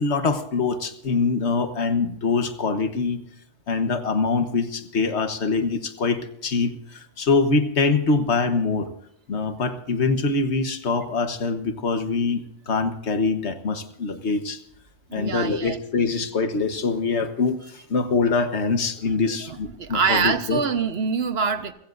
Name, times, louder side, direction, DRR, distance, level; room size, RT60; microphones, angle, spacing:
voice 1, 0.0-3.2 3.7-8.9 9.3-14.6 15.1-20.6, left 4 dB, 85° left, 9 dB, 1.5 m, -24 dB
voice 2, 15.1-16.0 19.1-19.2 19.5-21.7, right 5 dB, 70° right, 10 dB, 1.3 m, -25 dB
29.5 x 16.0 x 2.6 m, 0.76 s
omnidirectional pair, 1.1 m